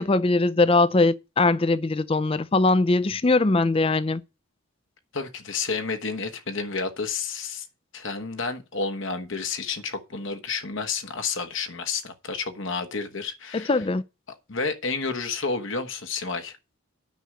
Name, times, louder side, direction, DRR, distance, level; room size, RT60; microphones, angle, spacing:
voice 1, 0.0-4.2 13.5-14.0, left 3 dB, 25° left, 0.4 m, -21 dB
voice 2, 5.1-7.7 7.9-13.8 14.5-16.6, left 4 dB, 55° left, 1.2 m, -30 dB
9.4 x 6.2 x 6.5 m
head